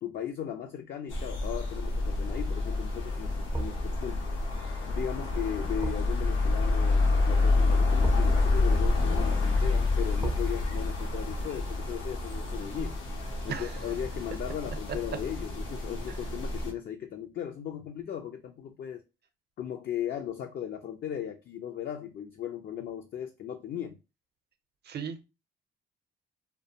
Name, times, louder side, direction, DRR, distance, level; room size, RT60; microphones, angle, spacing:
voice 1, 0.0-4.3 4.9-13.0 13.4-19.0 19.6-24.0, left 9 dB, 50° left, 0.4 m, -37 dB
sound 1, 1.1-16.7, left 3 dB, 85° left, 0.8 m, -28 dB
sound 2, 3.5-14.5 14.9-15.0, right 4 dB, 10° right, 0.4 m, -43 dB
voice 2, 24.9-25.2, right 7 dB, 55° right, 0.5 m, -36 dB
2.4 x 2.1 x 2.7 m
cardioid pair, 90°, 20 cm